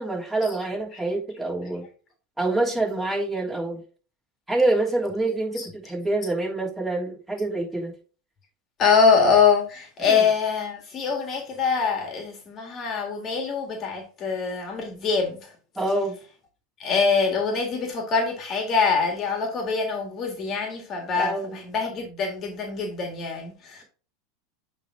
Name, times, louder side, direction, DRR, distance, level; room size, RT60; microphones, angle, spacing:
voice 1, 0.0-1.8 2.4-3.8 4.5-7.9 10.0-10.2 15.7-16.1 21.2-21.6, right 2 dB, 10° right, 3.2 m, -26 dB
voice 2, 8.8-15.4 16.8-21.3 21.6-23.8, left 5 dB, 35° left, 1.7 m, -24 dB
9.0 x 3.4 x 3.6 m
hypercardioid pair, 105°, 0 cm